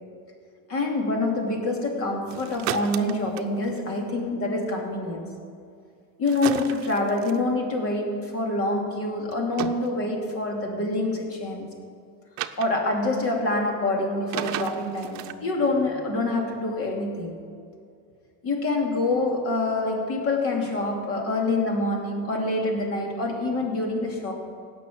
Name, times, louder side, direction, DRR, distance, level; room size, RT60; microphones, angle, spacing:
voice 1, 0.7-5.3 6.2-11.7 12.6-17.4 18.4-24.3, left 2 dB, 45° left, 1 dB, 2.8 m, -26 dB
sound 1, 2.3-3.9 6.3-7.4 9.3-9.9 12.4-12.7 14.3-15.3, right 12 dB, 60° right, 0.7 m, -33 dB
17.0 x 6.4 x 8.6 m, 2.4 s
cardioid pair, 145°, 32 cm